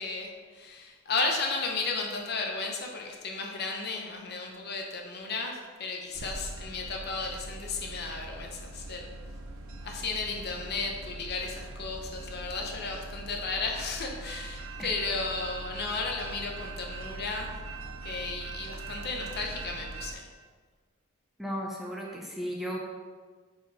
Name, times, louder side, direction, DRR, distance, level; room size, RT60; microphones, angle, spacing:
voice 1, 0.0-9.1 9.8-17.5 18.0-20.3, left 3 dB, 50° left, 1 dB, 0.9 m, -34 dB
sound 1, 6.1-20.1, right 2 dB, 90° right, 0.6 m, -42 dB
voice 2, 21.4-22.8, equal, ahead, -3 dB, 0.6 m, -35 dB
5.8 x 4.9 x 4.2 m, 1.5 s
head